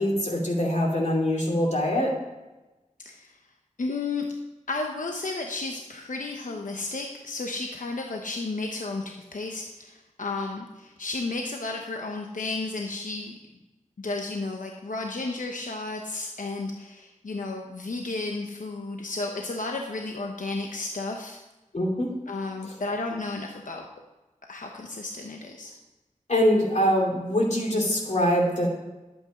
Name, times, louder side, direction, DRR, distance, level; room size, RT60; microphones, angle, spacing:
voice 1, 0.0-2.1 21.7-22.1 26.3-28.7, equal, 60° left, -1 dB, 2.7 m, -23 dB
voice 2, 3.0-3.4 3.8-4.3 4.7-13.3 14.0-21.4 22.3-23.9 24.5-25.7, left 3 dB, 85° left, 2 dB, 0.9 m, -33 dB
11.5 x 8.3 x 5.0 m, 1.1 s
wide cardioid pair, 75°, 13 cm